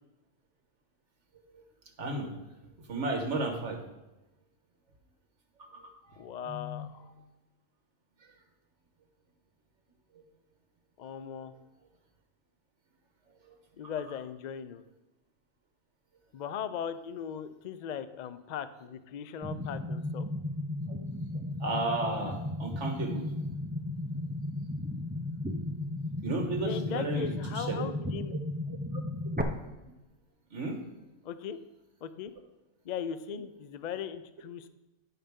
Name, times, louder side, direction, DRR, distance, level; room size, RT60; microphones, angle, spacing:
voice 1, 2.0-2.3 2.9-3.8 5.7-5.8 6.1-6.2 6.5-6.8 20.9-21.0 21.6-23.3 26.2-27.3 27.6-27.8 28.9-29.0 30.5-30.8, right 2 dB, 65° right, 3 dB, 1.7 m, -33 dB
voice 2, 6.2-7.0 11.0-11.5 13.8-14.8 16.3-20.3 26.6-28.3 31.2-31.6 32.0-32.3 32.8-34.7, left 8 dB, 70° left, 13 dB, 0.4 m, -38 dB
sound 1, 19.4-29.4, left 1 dB, 15° right, 0.3 m, -35 dB
14.5 x 5.6 x 3.6 m, 1.0 s
omnidirectional pair, 1.3 m